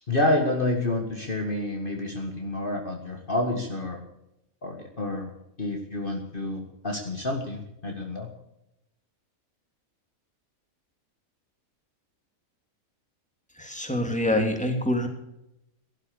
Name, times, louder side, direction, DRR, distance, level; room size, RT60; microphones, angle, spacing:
voice 1, 0.1-4.0 4.6-5.3 5.6-8.3, left 1 dB, 40° left, 2 dB, 2.0 m, -28 dB
voice 2, 13.6-15.1, left 1 dB, 5° left, 3 dB, 3.0 m, -25 dB
17.5 x 12.0 x 7.0 m, 0.86 s
omnidirectional pair, 1.5 m